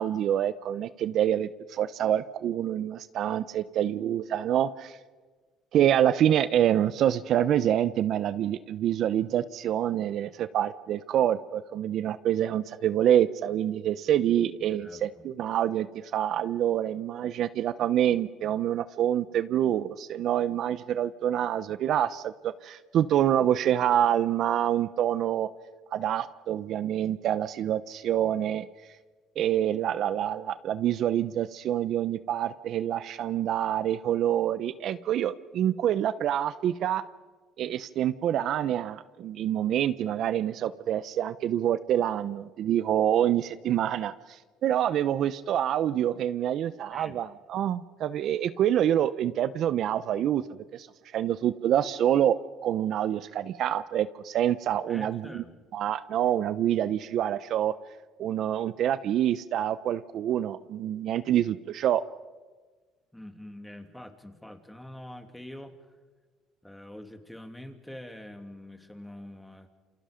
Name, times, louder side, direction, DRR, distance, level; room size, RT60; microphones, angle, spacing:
voice 1, 0.0-5.0 5.7-25.5 25.9-28.7 29.4-37.0 37.6-50.4 50.7-50.9 51.1-52.4 52.6-55.4 55.7-57.7 58.2-62.0, right 10 dB, 65° right, 14 dB, 0.8 m, -26 dB
voice 2, 14.7-15.3 46.9-47.2 54.9-55.6 63.1-65.8 66.6-69.7, left 1 dB, 5° left, 6 dB, 2.6 m, -45 dB
28.0 x 25.5 x 5.2 m, 1.4 s
supercardioid pair, 90°, 0 cm